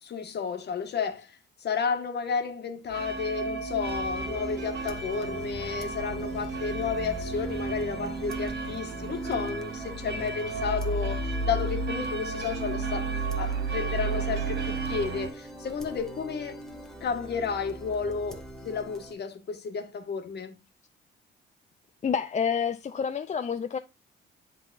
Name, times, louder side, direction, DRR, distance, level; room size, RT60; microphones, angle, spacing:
voice 1, 0.0-1.3 1.6-13.1 13.4-16.6 17.0-20.6, left 6 dB, 55° left, 1.8 m, -32 dB
sound 1, 2.9-15.3, right 3 dB, 55° right, 2.3 m, -33 dB
sound 2, 3.8-19.1, right 1 dB, 5° left, 1.9 m, -42 dB
voice 2, 22.0-23.8, left 7 dB, 35° left, 0.5 m, -28 dB
11.5 x 4.0 x 2.6 m
cardioid pair, 90°, 20 cm